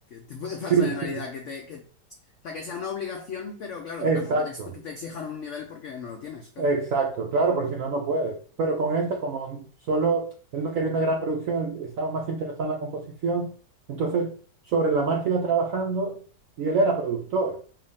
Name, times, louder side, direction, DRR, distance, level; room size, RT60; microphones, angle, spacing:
voice 1, 0.1-1.9 2.4-6.7, left 6 dB, 75° left, 0.7 m, -36 dB
voice 2, 0.7-1.1 4.0-4.7 6.6-13.5 13.9-14.3 14.7-16.2 16.6-17.6, right 3 dB, 65° right, 0.8 m, -26 dB
4.6 x 2.7 x 3.5 m
omnidirectional pair, 1.9 m